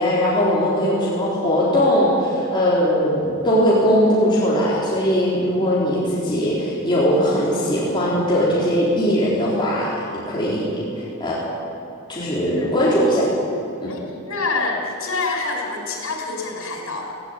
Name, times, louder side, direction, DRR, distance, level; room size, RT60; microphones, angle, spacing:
voice 1, 0.0-11.4 12.1-13.3 13.8-13.9, equal, 25° left, -7 dB, 3.9 m, -20 dB
voice 2, 12.4-12.8 13.9-17.1, left 3 dB, 90° left, 1 dB, 5.1 m, -27 dB
18.0 x 16.0 x 9.1 m, 2.7 s
head